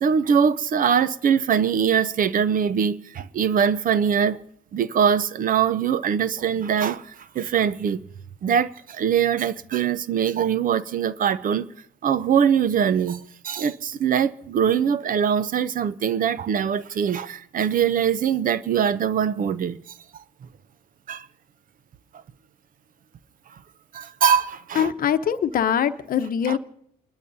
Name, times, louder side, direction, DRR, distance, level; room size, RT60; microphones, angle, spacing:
voice 1, 0.0-4.4 4.7-8.0 8.4-11.7 12.0-19.8 21.1-21.3 23.9-24.9 26.5-26.6, right 7 dB, 45° right, 0.6 m, -22 dB
voice 2, 24.7-26.6, left 8 dB, 50° left, 0.9 m, -23 dB
29.5 x 12.0 x 2.7 m
supercardioid pair, 85°, 19 cm